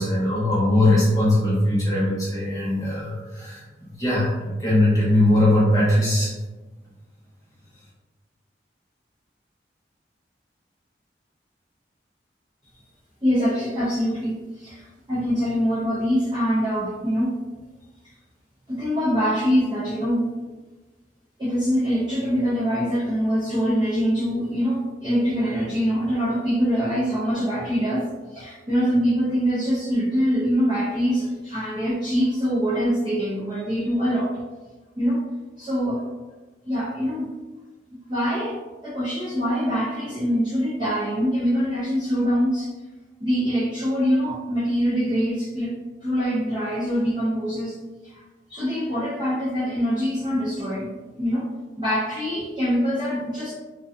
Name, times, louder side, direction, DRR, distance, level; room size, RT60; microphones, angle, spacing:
voice 1, 0.0-3.6 4.0-4.3 4.6-6.3, left 1 dB, 20° left, -8 dB, 0.8 m, -20 dB
voice 2, 13.2-17.4 18.7-20.4 21.4-34.4 35.0-35.2 35.6-36.1 36.7-37.3 38.1-42.7 43.2-47.8 48.0-48.2 48.5-51.5 51.8-53.5, equal, 25° right, -10 dB, 0.5 m, -24 dB
2.5 x 2.2 x 2.3 m, 1.2 s
head